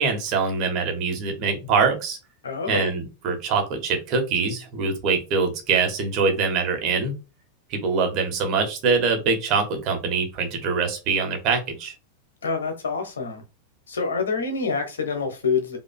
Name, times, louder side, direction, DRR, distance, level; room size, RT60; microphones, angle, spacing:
voice 1, 0.0-2.2 2.7-7.1 7.7-11.9, right 4 dB, 40° right, 1.3 m, -24 dB
voice 2, 2.4-2.9 12.4-13.4 13.9-15.8, left 5 dB, 70° left, 1.0 m, -26 dB
5.0 x 2.8 x 2.3 m
figure-of-eight pair, 90°, 0 cm